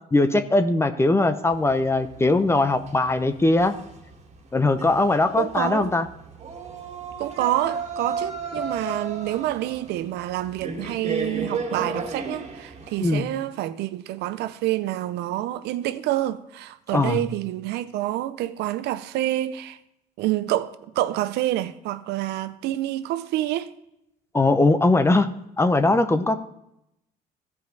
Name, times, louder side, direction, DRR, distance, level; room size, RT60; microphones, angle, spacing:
voice 1, 0.1-3.7 4.5-6.1 13.0-13.3 16.9-17.2 24.3-25.3 25.6-26.4, left 2 dB, 15° left, 0.7 m, -20 dB
sound 1, 1.5-13.2, right 4 dB, 40° right, 1.9 m, -35 dB
voice 2, 5.4-5.9 7.2-19.8 20.2-23.7, right 14 dB, 80° right, 0.6 m, -27 dB
15.0 x 5.4 x 3.9 m
cardioid pair, 110°, 17 cm